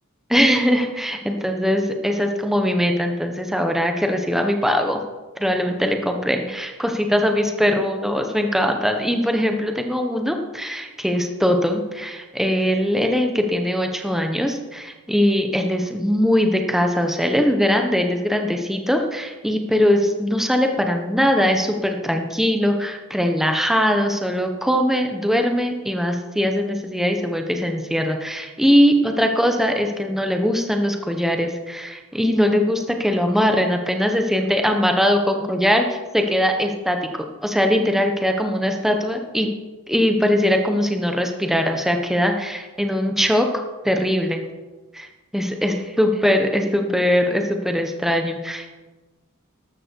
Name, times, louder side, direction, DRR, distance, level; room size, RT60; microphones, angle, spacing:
voice 1, 0.3-5.0 5.4-39.5 39.9-43.5 43.8-44.4 44.9-45.1 45.3-48.7, equal, ahead, 4 dB, 1.2 m, -21 dB
13.5 x 12.0 x 4.7 m, 1.2 s
head